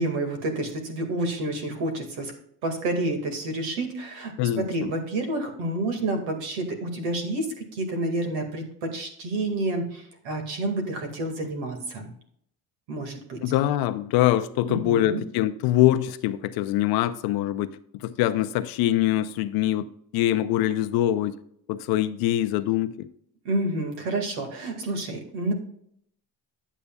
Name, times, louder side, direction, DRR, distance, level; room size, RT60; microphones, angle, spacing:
voice 1, 0.0-2.3 2.6-12.1 12.9-13.4 14.7-15.2 23.4-25.5, right 2 dB, 80° right, 2.2 m, -29 dB
voice 2, 4.4-4.9 13.4-17.7 18.0-19.9 20.1-21.3 21.7-23.1, left 13 dB, 70° left, 0.7 m, -24 dB
10.0 x 8.2 x 2.3 m
cardioid pair, 135°, 39 cm